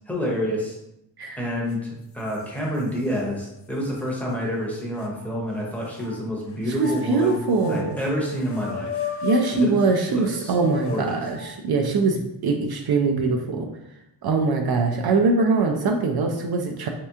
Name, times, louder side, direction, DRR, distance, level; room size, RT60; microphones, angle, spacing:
voice 1, 0.1-0.8 1.4-7.4 7.7-9.0 9.5-9.8 10.1-11.2, equal, 5° left, -3 dB, 0.7 m, -28 dB
sound 1, 1.7-1.8 2.3-3.2 3.8-3.9 5.0-6.1 6.7-11.6, left 7 dB, 35° left, 0.4 m, -35 dB
voice 2, 6.8-8.0 9.2-13.7 14.2-16.9, right 4 dB, 60° right, 4 dB, 0.5 m, -22 dB
3.2 x 2.9 x 3.5 m, 0.85 s
wide cardioid pair, 160°, 43 cm